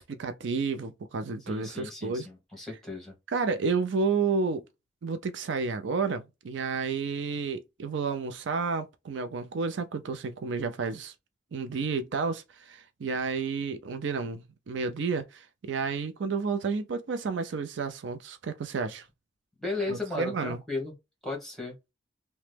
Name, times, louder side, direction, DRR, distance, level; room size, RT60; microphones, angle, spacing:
voice 1, 0.0-2.3 3.3-4.6 5.0-11.1 11.5-19.1 19.9-20.6, right 4 dB, 75° right, 0.4 m, -31 dB
voice 2, 1.5-3.1 19.6-20.9 21.2-21.8, left 2 dB, ahead, 1.2 m, -35 dB
2.9 x 2.1 x 3.2 m
head